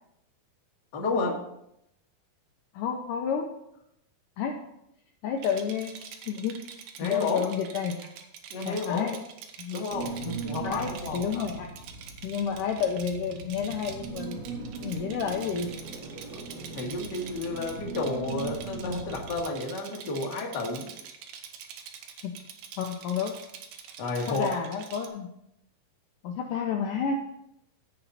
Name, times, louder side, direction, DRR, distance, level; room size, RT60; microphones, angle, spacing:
voice 1, 0.9-1.4 7.0-7.4 8.5-9.1 9.7-10.1 10.4-11.5 16.7-20.9 24.0-24.5, left 3 dB, 50° left, -1 dB, 1.3 m, -31 dB
voice 2, 2.7-3.6 4.4-4.6 5.2-6.6 7.0-8.1 8.7-9.2 9.6-9.9 10.3-10.4 10.6-11.7 12.2-15.7 22.2-22.4 22.8-23.4 24.3-25.3 26.2-27.2, left 6 dB, 85° left, 2 dB, 1.8 m, -30 dB
Rattle, 5.4-25.1, right 8 dB, 75° right, 2.5 m, -45 dB
sound 1, 9.9-19.4, right 4 dB, 55° right, 3.1 m, -39 dB
16.0 x 5.6 x 4.2 m, 0.80 s
omnidirectional pair, 4.8 m